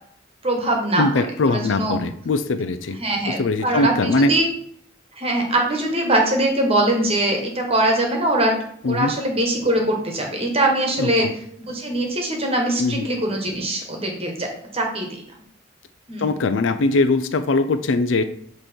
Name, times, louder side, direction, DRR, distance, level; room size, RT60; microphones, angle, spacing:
voice 1, 0.4-1.0 1.4-1.9 3.0-4.5 5.2-8.5 8.8-11.3 11.7-15.1 16.1-16.3, right 1 dB, 30° right, 1 dB, 1.2 m, -22 dB
voice 2, 1.0-3.0 3.3-4.3 8.8-9.1 11.0-11.1 12.8-13.1 16.2-18.2, left 3 dB, 85° left, 11 dB, 0.5 m, -21 dB
7.6 x 3.1 x 4.4 m, 0.65 s
head